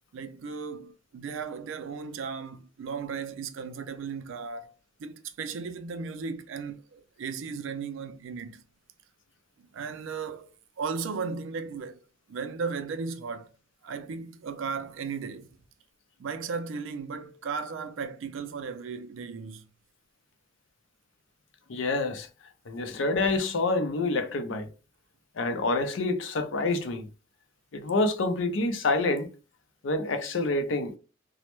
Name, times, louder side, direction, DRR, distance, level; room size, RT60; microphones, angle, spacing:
voice 1, 0.1-4.7 5.0-8.6 9.7-12.0 12.3-13.5 13.8-15.5 16.2-19.7, right 5 dB, 75° right, 0.4 m, -36 dB
voice 2, 21.7-22.3 22.7-24.7 25.4-27.1 27.7-29.3 29.8-31.0, left 2 dB, 70° left, 0.4 m, -27 dB
2.1 x 2.0 x 2.9 m
head